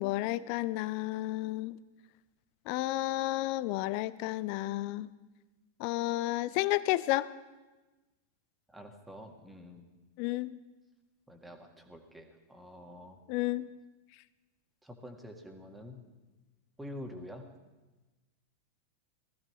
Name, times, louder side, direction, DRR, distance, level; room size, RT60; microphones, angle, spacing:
voice 1, 0.0-1.8 2.7-5.1 5.8-7.3 10.2-10.5 13.3-13.7, left 17 dB, 45° left, 18 dB, 0.5 m, -31 dB
voice 2, 8.7-9.8 11.3-13.2 14.8-16.0 16.8-17.5, left 1 dB, 5° right, 4 dB, 1.9 m, -47 dB
20.0 x 14.5 x 3.3 m, 1.2 s
figure-of-eight pair, 90°, 0 cm